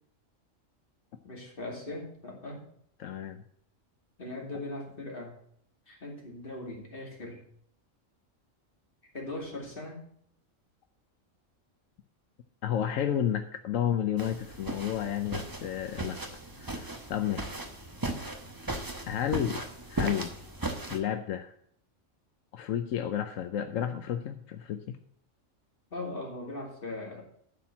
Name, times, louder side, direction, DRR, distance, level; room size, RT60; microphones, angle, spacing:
voice 1, 1.2-2.6 4.2-5.3 5.9-7.4 9.1-10.0 25.9-27.2, left 2 dB, 45° left, -1 dB, 2.7 m, -39 dB
voice 2, 3.0-3.4 12.6-16.2 16.6-17.5 19.1-19.6 19.9-20.3 20.9-21.5 22.5-25.0, left 9 dB, 85° left, 7 dB, 1.0 m, -31 dB
sound 1, 14.2-21.0, right 2 dB, 20° right, 0.9 m, -37 dB
12.0 x 4.4 x 7.1 m, 0.65 s
omnidirectional pair, 1.3 m